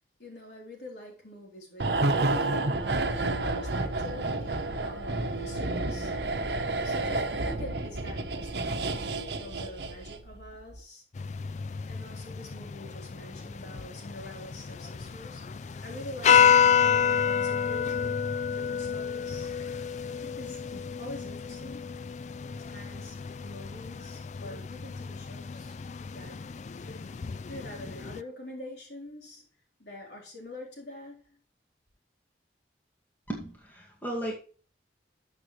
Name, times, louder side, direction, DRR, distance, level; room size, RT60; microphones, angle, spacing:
voice 1, 0.2-2.1 2.6-6.2 6.8-9.0 9.4-11.0 11.9-15.4 15.8-19.5 19.8-21.9 22.5-25.8 26.1-26.4 26.9-27.1 27.4-29.5 29.8-31.4, left 1 dB, 75° left, 4.0 m, -45 dB
sound 1, 1.8-10.3 10.6-10.8, right 2 dB, 65° right, 1.0 m, -30 dB
sound 2, 11.1-28.2, left 7 dB, 40° left, 0.3 m, -29 dB
voice 2, 33.3-34.3, right 1 dB, 10° left, 2.3 m, -35 dB
12.5 x 7.3 x 3.2 m
head